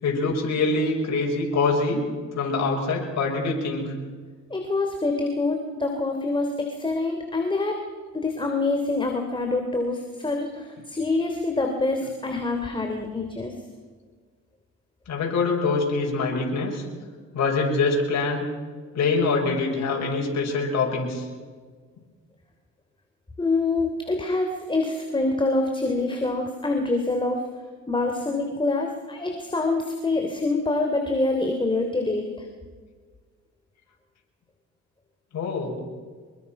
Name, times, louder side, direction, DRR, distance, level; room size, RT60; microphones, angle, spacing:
voice 1, 0.0-2.1 2.3-3.9 15.1-16.8 17.3-18.4 18.9-21.3 35.3-35.8, left 3 dB, 60° left, -1 dB, 6.4 m, -24 dB
voice 2, 4.5-7.8 8.1-13.5 23.4-27.4 27.9-32.3, left 2 dB, 15° left, 4 dB, 3.2 m, -25 dB
25.5 x 22.0 x 6.0 m, 1.5 s
cardioid pair, 90°, 30 cm